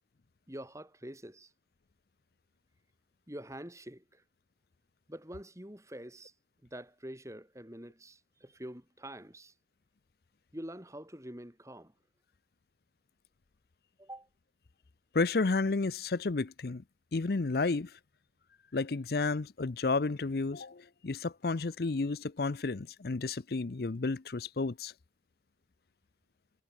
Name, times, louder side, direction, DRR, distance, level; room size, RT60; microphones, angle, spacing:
voice 1, 0.5-1.5 3.3-4.2 5.1-6.3 6.6-9.5 10.5-11.9 14.0-14.3, right 1 dB, 15° right, 5.9 m, -46 dB
voice 2, 15.1-16.8 17.1-17.9 18.7-24.9, left 3 dB, 60° left, 0.6 m, -31 dB
head